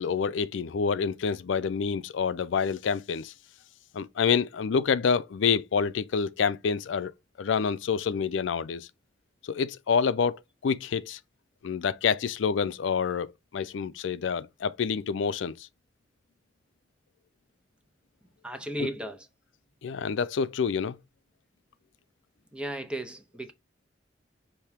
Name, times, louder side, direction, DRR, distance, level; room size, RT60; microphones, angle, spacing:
voice 1, 0.0-3.3 3.9-7.1 7.4-8.9 9.4-11.2 11.6-13.3 13.5-15.6 18.8-18.9 19.8-21.0, left 6 dB, 85° left, 0.4 m, -27 dB
voice 2, 18.4-19.3 22.5-23.5, right 1 dB, 5° right, 0.5 m, -35 dB
5.7 x 2.8 x 3.4 m
head